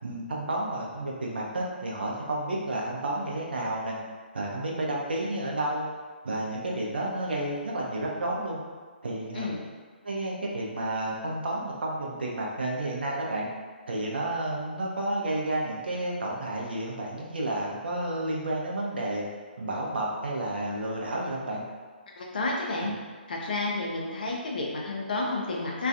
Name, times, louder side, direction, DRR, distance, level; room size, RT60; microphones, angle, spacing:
voice 1, 0.0-4.0 4.3-5.9 6.2-8.6 9.0-9.5 10.0-13.5 13.9-19.2 19.6-21.6 22.8-22.9, right 1 dB, 65° right, -3 dB, 0.6 m, -31 dB
voice 2, 22.2-22.9 23.3-25.9, left 2 dB, 55° left, -2 dB, 0.5 m, -30 dB
2.3 x 2.3 x 2.6 m, 1.5 s
figure-of-eight pair, 130°, 6 cm